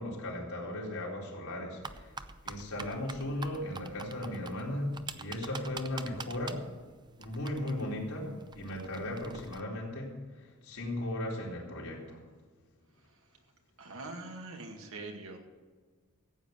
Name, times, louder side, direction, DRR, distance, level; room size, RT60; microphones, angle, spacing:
voice 1, 0.0-2.1 2.4-6.6 7.2-8.3 8.6-12.2, left 1 dB, 90° left, -3 dB, 3.9 m, -37 dB
sound 1, 1.8-9.6, right 4 dB, 20° right, 0.5 m, -46 dB
voice 2, 13.8-15.4, right 2 dB, 70° right, 3 dB, 2.1 m, -43 dB
14.5 x 8.8 x 6.5 m, 1.4 s
head